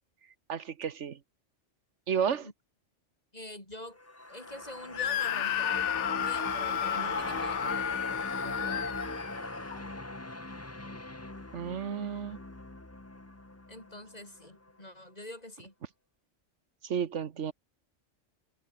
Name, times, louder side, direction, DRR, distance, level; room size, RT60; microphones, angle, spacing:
voice 1, 0.5-1.2 2.1-2.5 11.5-12.4 16.8-17.5, right 7 dB, 70° right, 1.3 m, -32 dB
voice 2, 3.3-4.0 4.3-9.0 13.7-15.7, left 1 dB, 30° left, 5.6 m, -45 dB
sound 1, 4.0-14.4 14.7-14.8, left 2 dB, 15° left, 1.1 m, -39 dB
Screaming, 4.9-9.8, left 11 dB, 75° left, 1.0 m, -33 dB
omnidirectional pair, 1.3 m